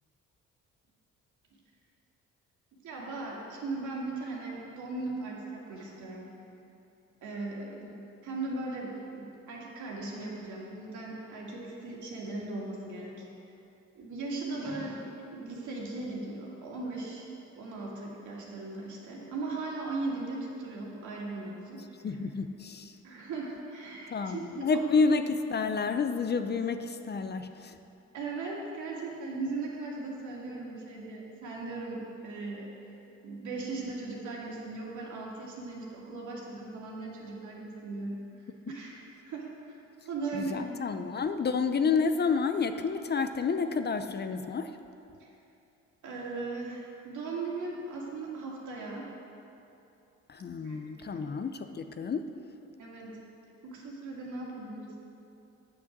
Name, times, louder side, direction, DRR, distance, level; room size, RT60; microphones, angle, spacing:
voice 1, 2.8-6.3 7.2-8.0 8.2-13.3 13.9-21.8 22.1-22.2 23.0-24.9 28.1-32.7 33.2-40.7 45.2-45.3 46.0-49.1 50.6-51.3 52.8-53.2 53.6-55.1, right 3 dB, 75° right, -3 dB, 2.3 m, -38 dB
voice 2, 22.0-23.0 24.1-27.8 40.3-44.8 50.3-52.3, left 5 dB, 35° left, 9 dB, 0.5 m, -30 dB
9.0 x 6.1 x 7.3 m, 2.8 s
cardioid pair, 90°, 30 cm